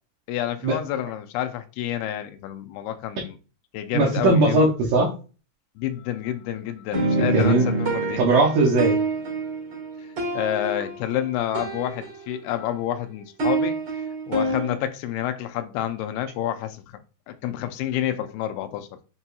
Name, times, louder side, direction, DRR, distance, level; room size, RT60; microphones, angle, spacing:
voice 1, 0.3-3.4 3.7-4.6 5.8-8.2 10.3-13.8 14.3-16.8 17.3-18.9, left 11 dB, 85° left, 2.5 m, -29 dB
voice 2, 3.9-5.1 7.3-7.7 8.2-9.0, right 2 dB, 75° right, 1.9 m, -19 dB
sound 1, 6.9-12.7 12.9-14.8, right 3 dB, 55° right, 1.2 m, -27 dB
6.6 x 2.8 x 2.3 m
omnidirectional pair, 4.4 m